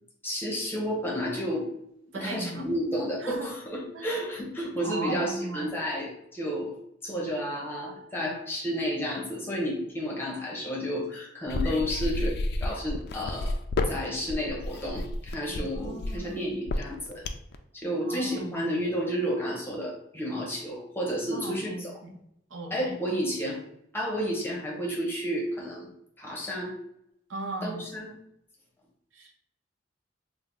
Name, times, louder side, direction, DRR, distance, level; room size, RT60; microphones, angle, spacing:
voice 1, 0.2-1.7 2.1-6.8 7.0-12.3 12.6-13.5 13.9-17.2 17.7-22.0 22.7-23.6 23.9-25.9 26.2-26.8 27.6-28.1, equal, 10° left, -3 dB, 0.8 m, -31 dB
voice 2, 2.1-2.6 3.2-3.5 3.9-4.1 4.8-5.7 15.5-16.6 18.1-18.6 21.2-22.2 22.5-23.0 27.3-27.8 29.1-29.3, right 2 dB, 80° right, 3 dB, 0.6 m, -37 dB
sound 1, 11.5-17.6, left 2 dB, 55° left, 0.3 m, -31 dB
3.4 x 2.0 x 3.8 m, 0.76 s
head